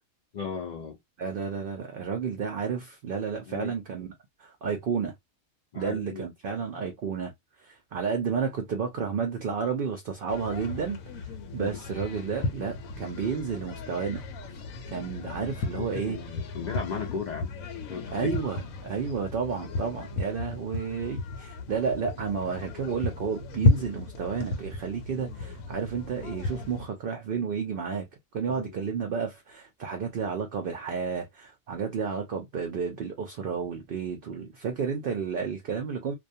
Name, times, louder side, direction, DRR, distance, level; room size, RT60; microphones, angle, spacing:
voice 1, 0.3-1.0 3.5-3.7 5.7-6.3 11.6-11.8 15.0-15.1 15.7-17.5 17.9-18.3 28.5-28.8, left 5 dB, 70° left, 0.4 m, -36 dB
voice 2, 1.2-4.1 4.4-5.1 5.7-7.3 7.6-11.3 11.5-14.2 14.9-16.2 18.1-28.1 28.3-36.2, right 6 dB, 65° right, 0.5 m, -31 dB
sound 1, 10.3-26.9, left 2 dB, 85° left, 1.0 m, -33 dB
2.4 x 2.2 x 2.5 m
omnidirectional pair, 1.4 m